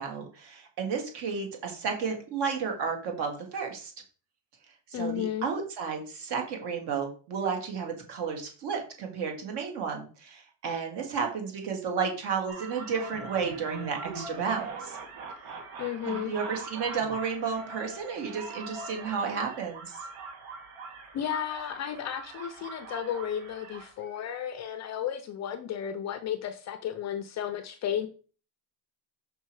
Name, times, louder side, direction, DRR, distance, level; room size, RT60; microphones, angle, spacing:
voice 1, 0.0-3.9 4.9-15.0 16.1-20.1, right 6 dB, 55° right, 2.3 m, -32 dB
voice 2, 4.9-5.5 15.8-16.3 21.1-28.1, left 9 dB, 35° left, 0.5 m, -33 dB
sound 1, 12.5-24.5, right 4 dB, 70° right, 2.3 m, -42 dB
5.8 x 5.5 x 4.7 m
cardioid pair, 170°, 49 cm